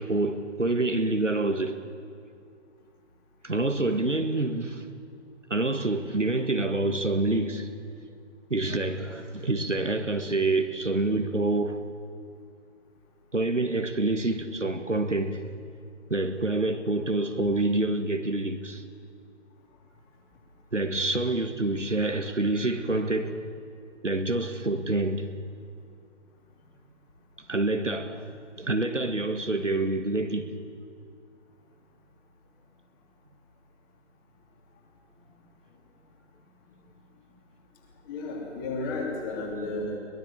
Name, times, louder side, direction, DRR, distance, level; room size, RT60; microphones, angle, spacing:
voice 1, 0.0-1.7 3.4-4.9 5.5-7.7 8.5-11.8 13.3-15.5 16.1-18.8 20.7-23.4 24.0-25.3 27.5-28.3 28.6-30.5, right 2 dB, 85° right, 1.9 m, -27 dB
voice 2, 38.0-40.0, left 2 dB, 20° left, 3.1 m, -33 dB
22.5 x 21.0 x 7.2 m
figure-of-eight pair, 145°, 36 cm